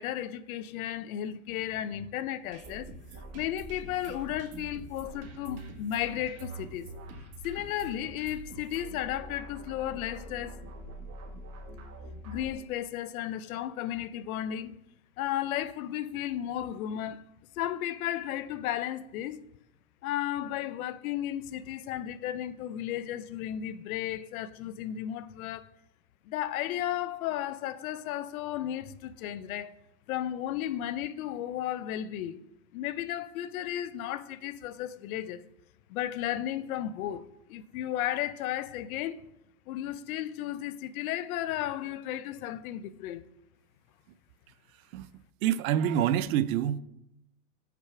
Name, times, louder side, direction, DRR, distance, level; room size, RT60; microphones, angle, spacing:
voice 1, 0.0-6.9 7.4-10.7 12.2-14.8 15.2-17.2 17.5-19.4 20.0-25.7 26.2-29.7 30.1-32.4 32.7-35.4 35.9-37.2 37.5-39.3 39.7-43.2, left 12 dB, 70° left, 0.6 m, -34 dB
sound 1, 2.5-12.6, right 2 dB, 35° right, 1.3 m, -45 dB
voice 2, 45.4-46.8, right 10 dB, 65° right, 0.6 m, -26 dB
5.9 x 4.6 x 5.8 m
supercardioid pair, 120°, 44 cm